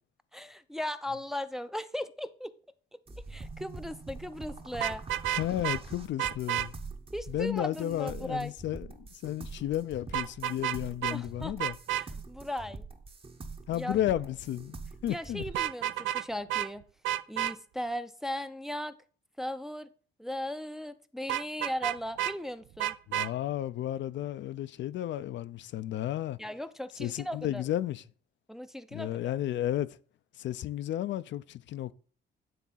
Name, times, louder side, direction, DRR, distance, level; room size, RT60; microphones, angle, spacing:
voice 1, 0.3-2.5 3.3-5.0 7.1-8.5 11.1-11.5 11.9-12.8 13.7-14.0 15.1-16.8 17.3-18.9 19.4-19.9 20.2-22.9 26.4-27.6 28.5-29.3, left 1 dB, ahead, 0.5 m, -37 dB
sound 1, 3.1-15.6, right 3 dB, 30° right, 1.0 m, -45 dB
Vehicle horn car horn honking, 4.7-5.8 6.2-6.7 10.1-10.8 11.0-11.2 11.6-12.0 15.5-16.2 16.5-16.7 17.0-17.5 21.3-22.3 22.8-23.3, right 12 dB, 80° right, 0.4 m, -30 dB
voice 2, 5.4-6.7 7.3-11.8 13.7-14.8 15.0-15.4 23.1-26.4 27.0-28.0 28.9-30.0 30.4-31.9, left 12 dB, 70° left, 0.5 m, -33 dB
9.4 x 3.6 x 5.7 m
cardioid pair, 90°, 20 cm